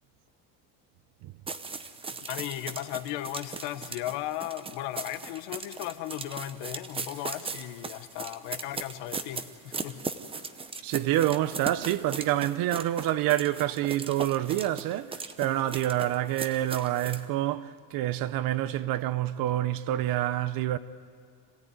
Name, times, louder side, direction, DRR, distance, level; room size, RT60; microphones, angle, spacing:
sound 1, 1.5-17.2, right 4 dB, 10° right, 0.7 m, -38 dB
voice 1, 2.1-10.0, left 14 dB, 70° left, 1.2 m, -36 dB
voice 2, 10.8-20.8, right 13 dB, 50° right, 0.8 m, -27 dB
26.5 x 16.5 x 9.4 m
cardioid pair, 155°, 44 cm